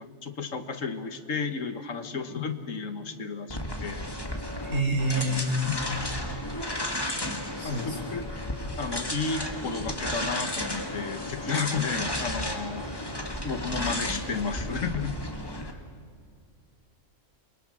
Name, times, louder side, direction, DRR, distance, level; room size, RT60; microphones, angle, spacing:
voice 1, 0.0-4.0 7.6-8.3 8.8-12.9 13.4-15.2 15.6-15.8, left 5 dB, 80° left, 8 dB, 1.8 m, -33 dB
sound 1, 3.5-15.7, left 1 dB, 20° left, 1.9 m, -33 dB
voice 2, 4.6-5.6 7.6-8.0, right 2 dB, 85° right, -2 dB, 6.4 m, -28 dB
29.0 x 23.5 x 6.3 m, 2.3 s
omnidirectional pair, 1.3 m